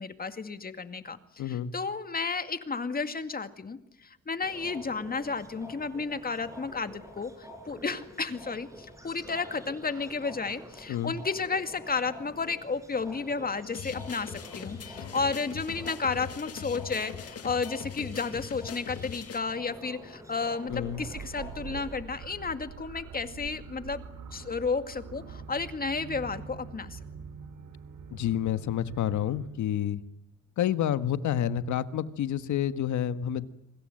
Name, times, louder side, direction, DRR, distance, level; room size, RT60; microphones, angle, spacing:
voice 1, 0.0-24.0 24.3-27.0, left 4 dB, 30° left, 9 dB, 2.2 m, -32 dB
voice 2, 1.4-1.7 10.9-11.1 20.7-21.0 28.1-30.0 30.6-33.5, left 10 dB, 70° left, 12 dB, 1.5 m, -29 dB
sound 1, 4.4-22.0, equal, 10° right, 6.3 m, -47 dB
sound 2, 13.7-19.4, left 8 dB, 55° left, 1.7 m, -41 dB
sound 3, 20.7-29.5, right 6 dB, 85° right, 4.7 m, -44 dB
26.0 x 25.5 x 7.8 m, 0.76 s
cardioid pair, 90°, 30 cm